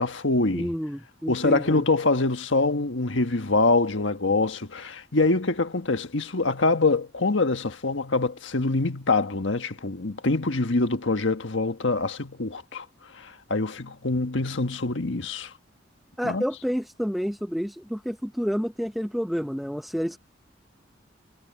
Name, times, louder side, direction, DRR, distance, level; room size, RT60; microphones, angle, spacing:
voice 1, 0.0-0.7 1.3-12.9 13.1-15.5 16.2-16.4, left 3 dB, 80° left, 1.5 m, -25 dB
voice 2, 0.5-1.8 16.2-20.2, equal, ahead, 0.7 m, -29 dB
head